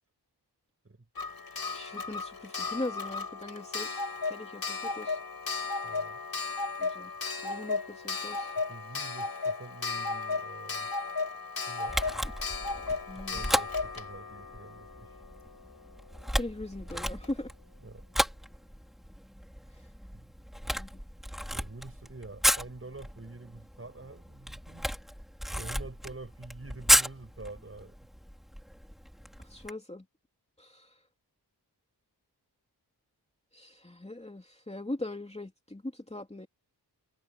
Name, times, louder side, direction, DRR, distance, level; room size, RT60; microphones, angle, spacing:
Clock, 1.2-15.7 16.9-17.0 17.2-17.3, left 4 dB, 60° left, 6.0 m, -35 dB
voice 1, 1.6-5.2 6.8-7.1 7.4-8.5 13.1-13.4 16.4-17.5 20.7-20.9 29.4-30.0 30.6-30.9 33.5-36.5, left 1 dB, 15° left, 3.0 m, -40 dB
voice 2, 5.8-6.2 8.7-10.9 11.7-12.0 13.2-15.2 17.8-18.0 20.1-20.3 21.5-24.9 25.5-28.0, right 2 dB, 30° right, 6.9 m, -46 dB
Camera, 11.9-29.7, equal, ahead, 4.2 m, -33 dB
wide cardioid pair, 85°, 41 cm